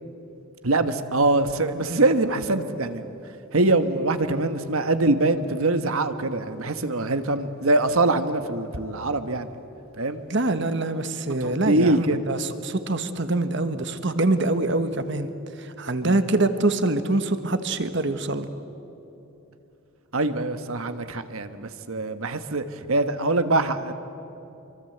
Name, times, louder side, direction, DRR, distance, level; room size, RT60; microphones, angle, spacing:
voice 1, 0.6-3.0 3.5-9.5 10.0-10.2 11.4-12.3 16.0-16.1 20.1-23.9, right 2 dB, 80° right, 9 dB, 1.3 m, -23 dB
voice 2, 10.3-15.3 15.6-18.5, right 2 dB, 55° right, 10 dB, 1.4 m, -24 dB
26.5 x 24.5 x 8.0 m, 3.0 s
head